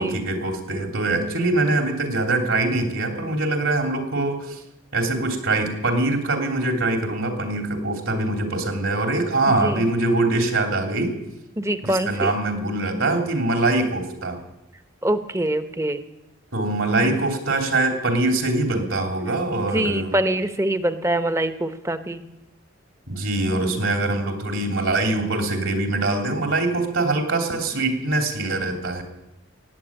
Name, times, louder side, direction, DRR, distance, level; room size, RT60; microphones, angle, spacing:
voice 1, 0.0-4.6 4.9-11.1 11.8-14.4 16.5-20.2 23.1-29.0, right 2 dB, 70° right, 3 dB, 3.1 m, -23 dB
voice 2, 11.6-12.3 15.0-16.0 19.5-22.2, right 1 dB, 15° right, 10 dB, 0.8 m, -24 dB
16.0 x 9.6 x 8.7 m, 0.93 s
head